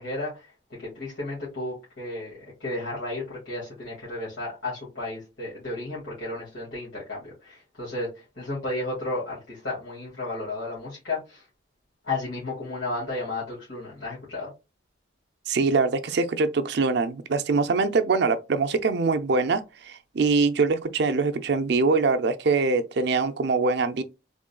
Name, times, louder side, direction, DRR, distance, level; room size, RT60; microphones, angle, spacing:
voice 1, 0.0-11.4 12.0-14.5, left 2 dB, 70° left, 2.0 m, -33 dB
voice 2, 15.5-24.0, right 4 dB, 55° right, 0.4 m, -23 dB
3.7 x 3.6 x 2.2 m
head